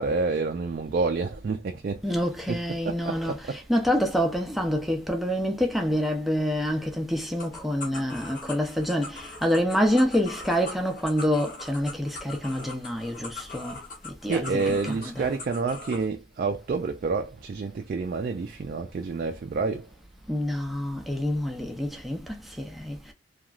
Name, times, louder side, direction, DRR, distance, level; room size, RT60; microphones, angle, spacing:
voice 1, 0.0-2.2 2.5-3.6 14.3-19.9, right 4 dB, 50° right, 0.3 m, -29 dB
voice 2, 2.0-15.3 20.3-23.1, equal, ahead, 0.5 m, -27 dB
sound 1, 7.4-16.1, left 3 dB, 45° left, 0.9 m, -41 dB
2.9 x 2.3 x 2.4 m
head